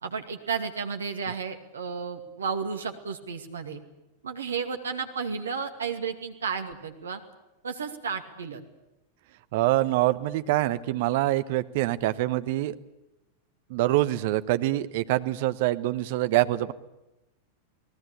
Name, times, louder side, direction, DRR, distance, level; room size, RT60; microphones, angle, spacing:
voice 1, 0.0-3.8 4.2-7.2 7.6-8.6, right 5 dB, 70° right, 6 dB, 2.5 m, -32 dB
voice 2, 9.5-12.7 13.7-16.7, right 16 dB, 50° right, 12 dB, 1.1 m, -25 dB
29.0 x 19.0 x 8.6 m, 0.95 s
figure-of-eight pair, 90°, 0 cm